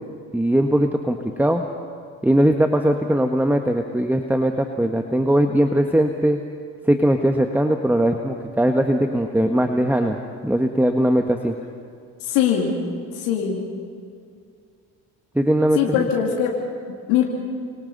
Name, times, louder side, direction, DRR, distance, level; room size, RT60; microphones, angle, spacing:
voice 1, 0.3-1.6 2.2-6.4 6.8-10.2 10.4-11.5 15.3-16.1, right 1 dB, 5° right, 4 dB, 1.5 m, -20 dB
voice 2, 12.2-12.7 13.2-13.6 15.7-16.5 17.1-17.2, left 9 dB, 85° left, -1 dB, 2.5 m, -21 dB
29.5 x 25.5 x 4.2 m, 2.3 s
hypercardioid pair, 50°, 43 cm